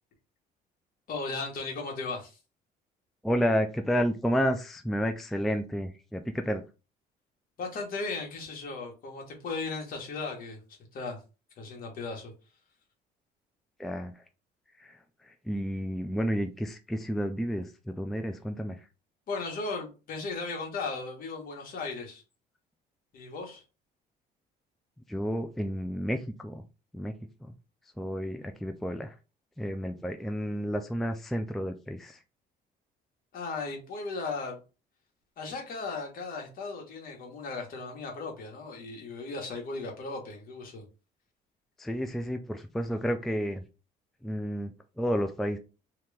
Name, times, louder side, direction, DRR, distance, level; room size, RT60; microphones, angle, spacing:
voice 1, 1.1-2.4 7.6-10.6 10.9-11.2 11.6-12.3 19.3-22.2 23.1-23.6 33.3-34.6 35.4-40.8, left 3 dB, 60° left, 1.5 m, -36 dB
voice 2, 3.2-6.6 13.8-14.1 14.8-14.9 15.5-18.8 25.1-26.6 26.9-27.1 27.4-27.5 28.0-29.1 29.6-32.2 41.8-43.6 44.2-45.6, equal, ahead, 0.3 m, -31 dB
3.0 x 2.9 x 3.4 m
cardioid pair, 110°, 17 cm